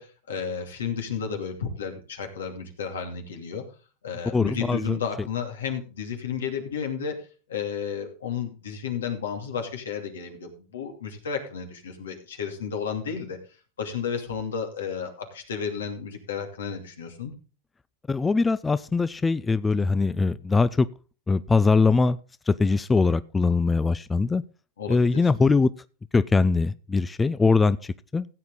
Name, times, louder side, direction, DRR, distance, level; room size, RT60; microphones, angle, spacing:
voice 1, 0.0-3.6 4.0-13.4 13.8-17.3 24.8-25.3, left 6 dB, 85° left, 2.7 m, -32 dB
voice 2, 4.3-5.0 18.1-20.9 21.3-22.2 22.5-24.4 24.9-25.7 26.1-28.3, left 4 dB, 15° left, 0.4 m, -22 dB
15.5 x 8.1 x 3.8 m
hypercardioid pair, 105°, 0 cm